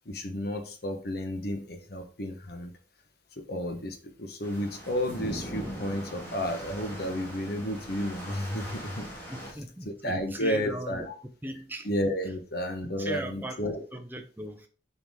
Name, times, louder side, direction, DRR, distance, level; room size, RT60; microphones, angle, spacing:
voice 1, 0.0-2.7 3.4-9.1 9.8-11.1 11.8-13.8, equal, 55° left, 1.2 m, -32 dB
sound 1, 4.4-9.5, equal, 10° left, 2.1 m, -40 dB
voice 2, 9.3-11.1 11.4-11.9 12.8-14.7, right 1 dB, 10° right, 0.7 m, -38 dB
7.2 x 4.8 x 3.7 m
head